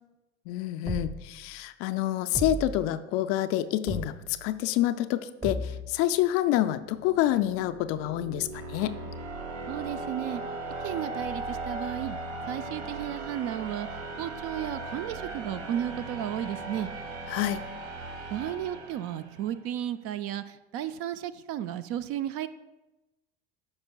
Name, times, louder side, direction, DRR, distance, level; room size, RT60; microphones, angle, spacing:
voice 1, 0.5-4.1 4.4-9.0 17.3-17.6, left 13 dB, 45° left, 11 dB, 0.4 m, -27 dB
sound 1, 0.9-1.5 2.3-2.9 3.9-4.5 5.4-6.0, right 1 dB, 20° right, 1.0 m, -35 dB
sound 2, 6.7-19.6, right 2 dB, 65° right, 0.9 m, -38 dB
voice 2, 9.6-10.4 10.8-12.2 12.5-13.9 14.2-16.9 18.3-22.5, right 11 dB, 45° right, 13 dB, 0.5 m, -33 dB
14.5 x 5.1 x 2.2 m, 1.0 s
figure-of-eight pair, 70°, 35 cm